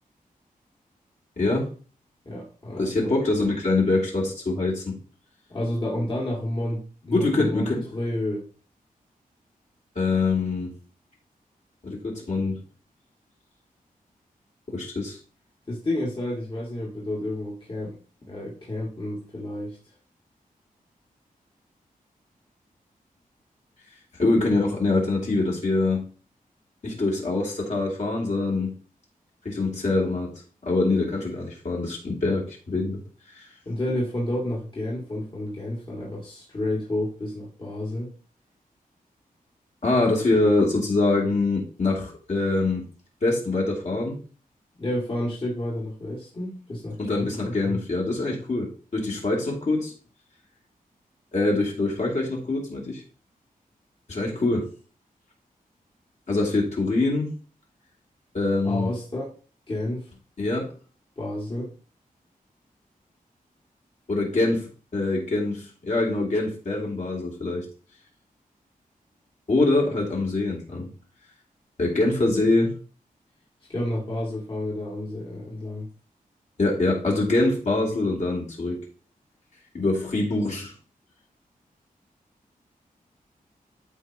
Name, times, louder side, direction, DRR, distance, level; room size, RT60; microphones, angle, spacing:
voice 1, 1.4-1.7 2.8-5.0 7.1-7.8 10.0-10.8 11.8-12.6 14.7-15.2 24.2-26.1 26.8-28.8 29.4-33.0 33.3-33.5 39.8-42.9 43.2-44.2 47.0-49.9 51.3-53.0 54.1-54.7 56.3-57.3 58.3-58.9 60.4-60.7 64.1-67.7 69.5-70.9 71.8-72.7 76.6-78.9 79.7-80.7, left 2 dB, 50° left, -2 dB, 2.6 m, -24 dB
voice 2, 2.3-3.1 5.5-8.5 15.7-18.0 18.3-19.8 33.7-38.1 44.8-47.8 58.6-59.3 59.7-60.1 61.2-61.7 73.7-75.9, left 1 dB, 35° left, -5 dB, 1.9 m, -30 dB
12.5 x 4.7 x 2.8 m, 0.37 s
wide cardioid pair, 160°, 15 cm